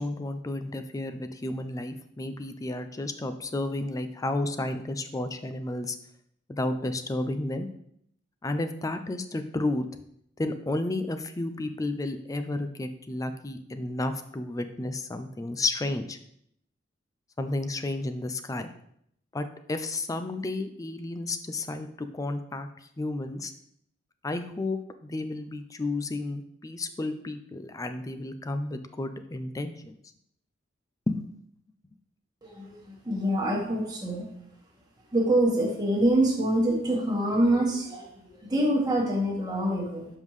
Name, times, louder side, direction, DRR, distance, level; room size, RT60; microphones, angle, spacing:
voice 1, 0.0-6.0 6.5-7.7 8.4-9.9 10.4-16.2 17.4-18.7 19.3-22.7 23.0-23.5 24.2-30.0 31.1-31.3, left 2 dB, 15° left, 9 dB, 0.4 m, -32 dB
voice 2, 32.4-32.7 33.0-34.2 35.1-40.1, right 1 dB, 20° right, -2 dB, 1.5 m, -25 dB
7.1 x 5.4 x 3.2 m, 0.71 s
head